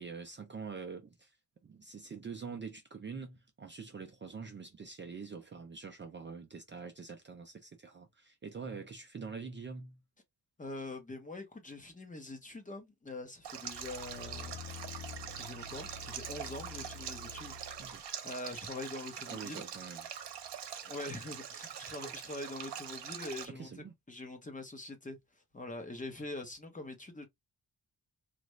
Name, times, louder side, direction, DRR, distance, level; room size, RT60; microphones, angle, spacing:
voice 1, 0.0-1.4 1.6-10.0 17.8-18.0 19.3-20.1 22.0-22.1 23.5-23.9, right 5 dB, 30° right, 0.5 m, -45 dB
voice 2, 10.6-14.6 15.3-19.6 20.8-25.2 25.5-27.3, left 2 dB, 20° left, 0.8 m, -44 dB
Stream, 13.4-23.5, right 9 dB, 85° right, 0.8 m, -44 dB
sound 1, 13.7-18.0 18.5-18.6, left 6 dB, 55° left, 0.5 m, -48 dB
3.1 x 2.5 x 3.1 m
wide cardioid pair, 155°, 41 cm